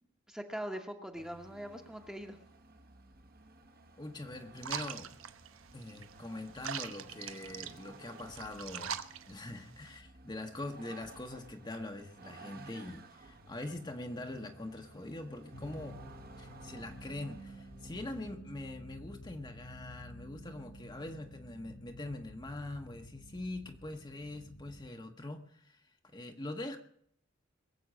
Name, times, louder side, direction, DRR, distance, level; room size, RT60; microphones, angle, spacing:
voice 1, 0.3-2.4, equal, 5° right, 4 dB, 1.1 m, -42 dB
Vehicle, 1.1-18.4, right 2 dB, 45° right, 1.3 m, -56 dB
voice 2, 3.9-5.1 5.7-9.0 9.3-16.0 16.4-26.8, left 2 dB, 20° left, 4 dB, 1.0 m, -43 dB
sound 1, 4.6-10.0, right 8 dB, 85° right, 0.9 m, -43 dB
sound 2, 15.5-24.9, equal, 80° left, 3.6 m, -50 dB
22.0 x 7.9 x 6.3 m, 0.67 s
head